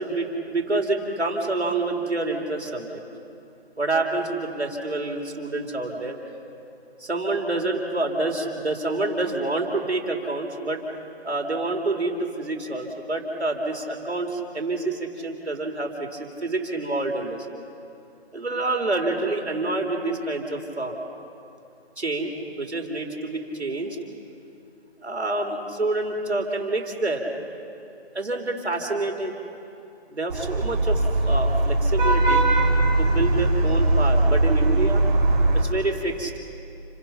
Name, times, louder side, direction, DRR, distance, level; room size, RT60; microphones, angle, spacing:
voice 1, 0.0-3.0 3.8-6.2 7.0-10.8 11.2-17.5 18.3-20.9 22.0-24.0 25.0-27.2 28.1-29.3 30.1-32.4 33.0-35.0 35.5-36.3, right 2 dB, 90° right, 2 dB, 4.3 m, -27 dB
Vehicle horn car horn honking / Traffic noise roadway noise, 30.3-35.6, right 2 dB, 45° right, 4.9 m, -20 dB
30.0 x 25.0 x 5.9 m, 2.6 s
figure-of-eight pair, 165°, 32 cm